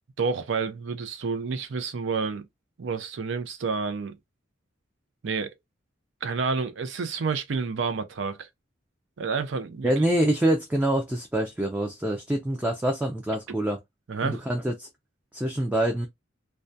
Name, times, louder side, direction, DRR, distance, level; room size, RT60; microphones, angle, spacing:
voice 1, 0.2-2.5 2.8-4.1 5.2-5.5 6.2-8.5 9.2-9.9 14.1-14.4, right 5 dB, 65° right, 0.5 m, -29 dB
voice 2, 9.8-13.8 14.2-14.9 15.3-16.1, right 1 dB, 10° right, 0.3 m, -25 dB
2.3 x 2.2 x 2.6 m
head